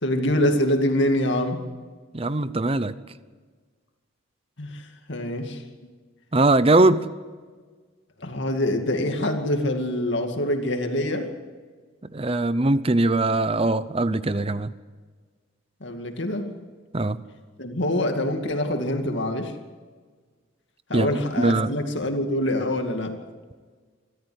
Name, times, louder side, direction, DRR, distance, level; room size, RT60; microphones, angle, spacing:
voice 1, 0.0-1.6 4.6-5.6 8.2-11.3 15.8-16.5 17.6-19.5 20.9-23.2, left 1 dB, 60° left, 5 dB, 2.3 m, -25 dB
voice 2, 2.1-2.9 6.3-7.1 12.1-14.7 16.9-17.2 20.9-21.1 21.4-21.8, right 2 dB, 25° right, 15 dB, 0.7 m, -21 dB
26.0 x 13.5 x 8.0 m, 1.5 s
head